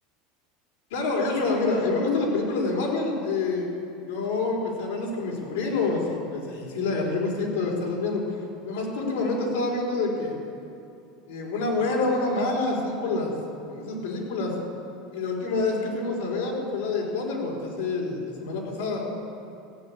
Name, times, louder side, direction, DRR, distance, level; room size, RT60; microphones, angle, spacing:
voice 1, 0.9-3.7 4.1-8.2 8.6-10.4 11.3-13.3 13.7-14.6 15.1-19.0, left 3 dB, 85° left, -1 dB, 4.2 m, -27 dB
16.0 x 8.4 x 8.5 m, 2.6 s
supercardioid pair, 150°, 0 cm